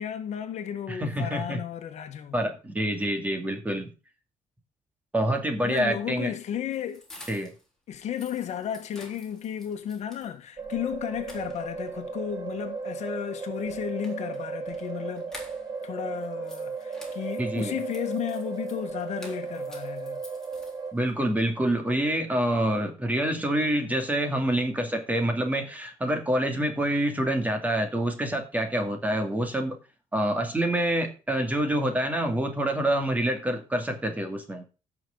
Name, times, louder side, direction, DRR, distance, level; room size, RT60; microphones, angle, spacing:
voice 1, 0.0-2.3 5.6-7.0 7.9-15.3 15.8-20.2, left 9 dB, 60° left, 1.5 m, -33 dB
voice 2, 0.9-1.6 2.3-3.9 5.1-6.3 7.3-7.5 17.4-17.8 20.9-29.8 30.1-34.6, right 1 dB, 10° right, 2.5 m, -27 dB
sound 1, 5.6-7.7 8.0-10.3 10.7-10.8 11.1-12.0 13.6-15.9 16.2-21.1, left 1 dB, 5° left, 3.7 m, -50 dB
sound 2, 10.6-20.9, right 4 dB, 30° right, 2.6 m, -35 dB
16.0 x 6.3 x 3.9 m
cardioid pair, 145°, 13 cm